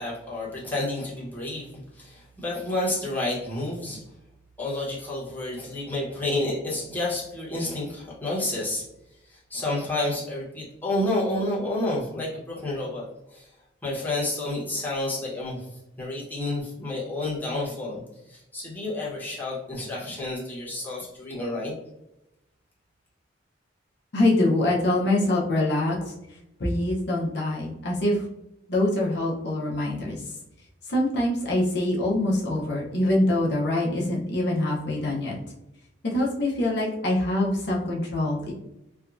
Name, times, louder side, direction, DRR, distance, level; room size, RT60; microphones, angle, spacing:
voice 1, 0.0-4.0 4.6-8.9 9.2-13.5 13.8-15.7 16.0-18.0 18.3-21.7, left 2 dB, 10° left, -7 dB, 1.0 m, -30 dB
voice 2, 24.1-26.0 26.6-28.2 28.7-30.2 30.9-35.3 36.0-38.5, left 1 dB, 65° left, -3 dB, 0.7 m, -24 dB
3.4 x 2.2 x 2.5 m, 0.90 s
head